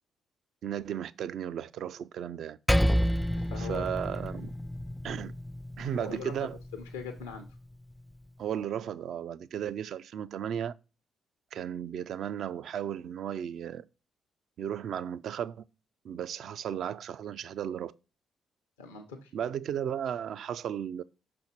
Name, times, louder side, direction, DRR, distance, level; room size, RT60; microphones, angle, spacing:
voice 1, 0.6-2.6 3.6-4.5 5.0-5.3 5.8-6.6 8.4-10.7 11.5-13.8 14.6-15.6 16.0-17.9 19.3-21.0, right 9 dB, 65° right, 0.3 m, -35 dB
Percussion, 2.7-7.5, equal, 10° left, 0.3 m, -30 dB
voice 2, 3.3-3.9 5.9-6.3 6.7-7.5 18.8-19.3, left 6 dB, 90° left, 0.7 m, -41 dB
5.8 x 4.3 x 4.3 m
hypercardioid pair, 45°, 0 cm